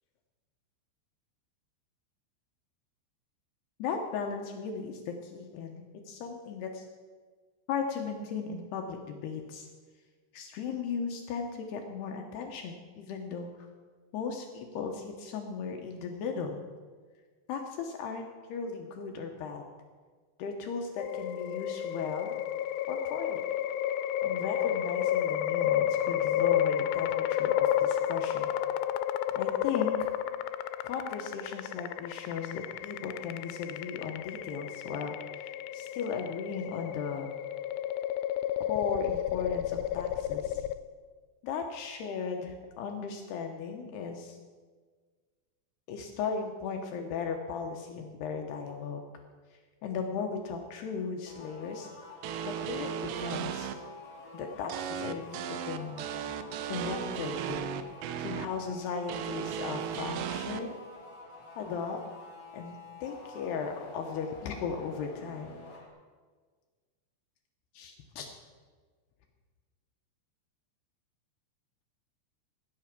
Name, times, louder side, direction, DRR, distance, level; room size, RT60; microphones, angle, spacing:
voice 1, 3.8-6.9 7.7-9.7 10.3-13.7 14.1-16.6 17.5-19.6 20.4-22.3 22.9-23.4 24.2-28.5 29.3-30.1 30.8-37.3 38.7-40.6 41.4-44.4 45.9-49.0 49.5-51.9 52.4-53.7 54.3-56.1 56.7-57.6 58.2-60.7 61.6-62.0 62.5-65.6 67.7-68.3, left 5 dB, 75° left, 3 dB, 2.7 m, -37 dB
sound 1, 21.0-40.8, left 11 dB, 90° left, 3.0 m, -31 dB
sound 2, 51.3-65.9, left 3 dB, 25° left, 3.3 m, -49 dB
sound 3, 52.2-53.7 54.7-58.5 59.1-60.6, right 8 dB, 75° right, 2.8 m, -35 dB
18.5 x 9.4 x 6.0 m, 1.5 s
omnidirectional pair, 5.4 m